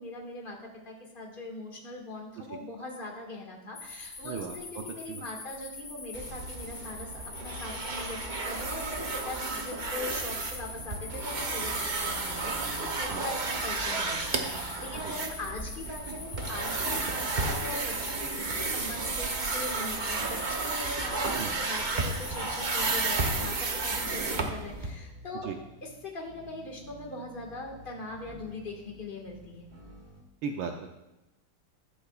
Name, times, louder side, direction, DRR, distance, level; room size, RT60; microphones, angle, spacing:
voice 1, 0.0-7.1 7.4-21.2 21.6-25.5 25.8-29.7, left 2 dB, 25° left, 0 dB, 1.8 m, -41 dB
sound 1, 3.7-23.4, left 3 dB, 55° left, 2.3 m, -44 dB
voice 2, 4.2-4.5 5.1-5.2 13.1-13.2 15.0-15.1 21.3-21.6 25.4-25.6 30.4-30.7, right 6 dB, 75° right, 4 dB, 1.4 m, -35 dB
sound 2, 6.1-24.9, right 3 dB, 50° right, 0.5 m, -32 dB
sound 3, 12.2-30.2, right 3 dB, 35° right, 1.5 m, -52 dB
14.0 x 11.5 x 2.4 m, 0.97 s
omnidirectional pair, 2.2 m